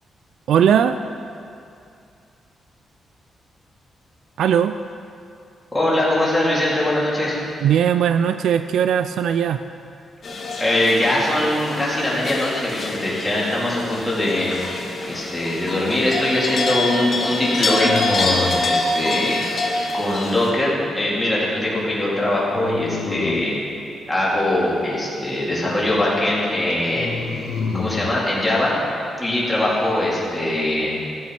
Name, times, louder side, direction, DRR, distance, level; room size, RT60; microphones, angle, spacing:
voice 1, 0.5-1.0 4.4-4.7 7.6-9.6, right 8 dB, 80° right, 10 dB, 0.4 m, -18 dB
voice 2, 5.7-7.4 10.6-23.6 24.1-27.2 27.7-28.8 29.2-30.9, left 1 dB, 10° left, -7 dB, 3.7 m, -22 dB
sound 1, 10.2-20.5, left 2 dB, 45° left, 2.1 m, -26 dB
sound 2, 15.1-15.8 17.8-18.8 22.6-23.6 26.9-28.2, left 6 dB, 70° left, 0.7 m, -29 dB
14.5 x 8.7 x 6.0 m, 2.5 s
cardioid pair, 115°, 0 cm